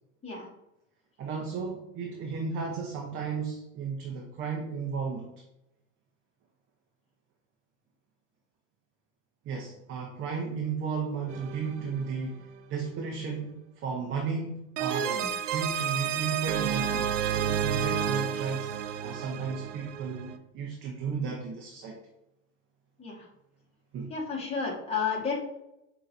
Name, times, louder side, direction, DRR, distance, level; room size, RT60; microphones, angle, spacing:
voice 1, 1.2-5.3 9.4-15.2 15.5-22.0 23.9-24.1, right 5 dB, 35° right, 2 dB, 0.7 m, -34 dB
sound 1, 11.3-12.3 14.8-20.4, right 8 dB, 80° right, 0.5 m, -31 dB
voice 2, 24.1-25.4, left 5 dB, 15° left, -2 dB, 1.4 m, -32 dB
5.6 x 2.8 x 2.6 m, 0.86 s
hypercardioid pair, 100°, 36 cm